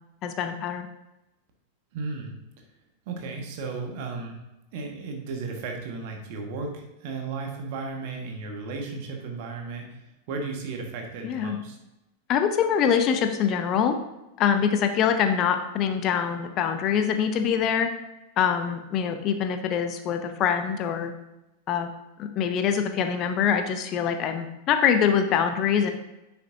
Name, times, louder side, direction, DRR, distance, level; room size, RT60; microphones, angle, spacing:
voice 1, 0.2-0.9 11.2-11.6 12.3-13.9 14.4-17.9 18.4-21.1 21.7-21.9 22.2-25.9, left 8 dB, 35° left, 7 dB, 0.7 m, -24 dB
voice 2, 1.9-2.4 3.1-4.4 4.7-11.8, right 4 dB, 50° right, 2 dB, 1.6 m, -35 dB
10.0 x 6.0 x 2.7 m, 0.95 s
figure-of-eight pair, 90°, 0 cm